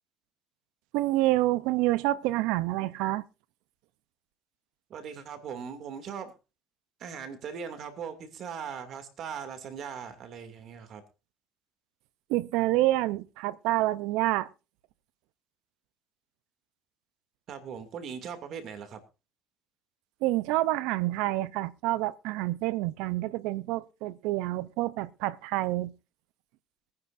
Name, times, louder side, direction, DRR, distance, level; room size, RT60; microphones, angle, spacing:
voice 1, 0.9-3.2 12.3-14.5 20.2-25.9, right 17 dB, 85° right, 0.7 m, -28 dB
voice 2, 4.9-6.3 7.0-11.0 17.5-19.0, right 7 dB, 60° right, 2.6 m, -39 dB
22.0 x 9.7 x 2.7 m
cardioid pair, 95°, 0 cm